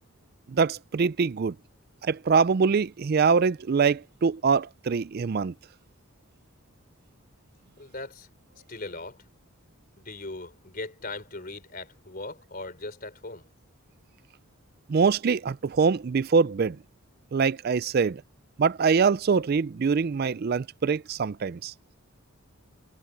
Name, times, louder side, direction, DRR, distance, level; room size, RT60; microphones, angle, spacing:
voice 1, 0.5-1.6 2.0-5.5 14.9-16.8 17.3-18.2 18.6-21.7, right 5 dB, 45° right, 0.4 m, -24 dB
voice 2, 7.8-8.3 8.7-9.2 10.0-13.5, left 2 dB, 40° left, 4.0 m, -39 dB
head